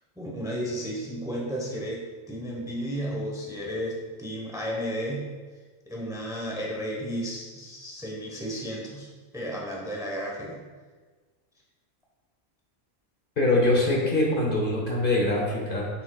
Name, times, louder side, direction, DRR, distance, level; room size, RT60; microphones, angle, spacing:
voice 1, 0.2-5.2 5.9-9.1 9.3-10.6, equal, 5° right, -3 dB, 1.0 m, -33 dB
voice 2, 13.4-15.9, left 2 dB, 45° left, -2 dB, 1.2 m, -23 dB
7.0 x 6.7 x 2.4 m, 1.4 s
omnidirectional pair, 1.3 m